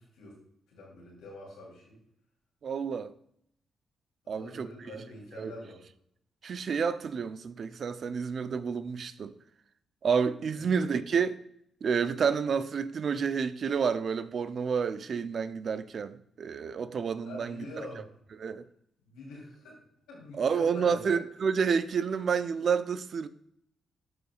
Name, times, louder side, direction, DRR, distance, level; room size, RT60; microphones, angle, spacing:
voice 1, 0.7-2.0 4.2-5.8 10.5-10.6 17.2-18.0 19.0-19.7 20.1-21.1, left 1 dB, 90° left, 3.1 m, -45 dB
voice 2, 2.6-3.1 4.3-4.7 5.4-5.5 6.4-9.3 10.0-11.4 11.8-17.9 18.4-18.7 20.3-23.3, right 6 dB, 60° right, 0.5 m, -29 dB
11.5 x 5.1 x 2.4 m
supercardioid pair, 50°, 0 cm